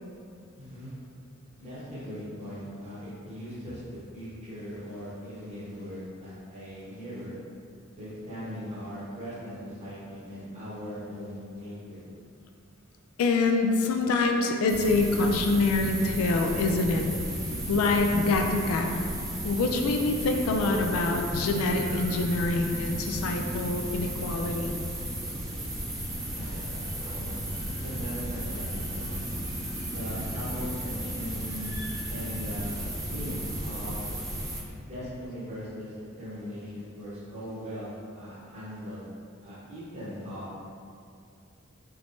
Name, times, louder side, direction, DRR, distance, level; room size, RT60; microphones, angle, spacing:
voice 1, 0.6-0.9 1.6-7.3 8.0-12.0 26.3-29.2 29.9-31.7 32.1-32.8 33.1-34.0 34.8-39.1 39.4-40.5, equal, 35° right, -10 dB, 0.9 m, -39 dB
voice 2, 13.2-17.1 17.7-19.0 19.4-24.7, left 3 dB, 80° left, 3 dB, 0.3 m, -25 dB
sound 1, 14.7-34.6, right 1 dB, 15° right, 0.5 m, -34 dB
3.4 x 3.0 x 2.5 m, 2.4 s
head